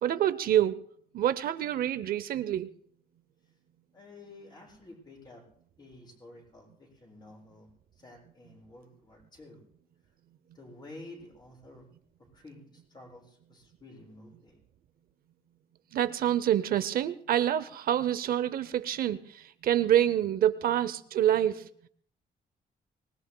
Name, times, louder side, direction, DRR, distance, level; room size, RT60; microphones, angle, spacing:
voice 1, 0.0-0.8 1.1-2.7 15.9-21.7, right 11 dB, 65° right, 14 dB, 0.6 m, -27 dB
voice 2, 3.9-5.5 5.8-7.7 8.0-9.6 10.5-11.9 12.2-14.6, left 2 dB, 25° left, -1 dB, 7.3 m, -51 dB
24.5 x 20.5 x 2.2 m, 0.62 s
cardioid pair, 135°, 16 cm